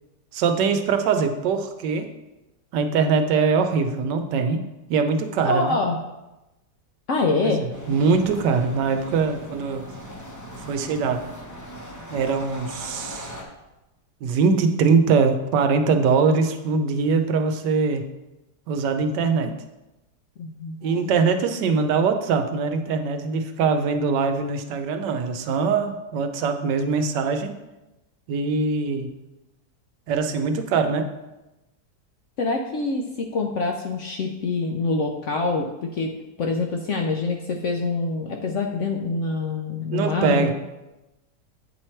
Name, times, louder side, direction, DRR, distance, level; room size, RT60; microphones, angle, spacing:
voice 1, 0.3-2.1 2.7-4.6 4.9-5.7 7.4-9.8 10.6-11.2 12.1-13.3 14.2-18.0 18.7-19.5 20.8-27.5 28.3-29.1 30.1-31.1 39.9-40.5, right 5 dB, 85° right, 7 dB, 1.3 m, -22 dB
voice 2, 5.4-6.0 7.1-7.6 19.3-19.5 20.4-21.1 32.4-35.7 35.9-36.1 36.4-40.5, left 3 dB, 70° left, 2 dB, 0.7 m, -25 dB
sound 1, 7.7-13.4, equal, 20° left, 0.5 m, -39 dB
9.1 x 3.2 x 4.3 m, 1.0 s
omnidirectional pair, 1.8 m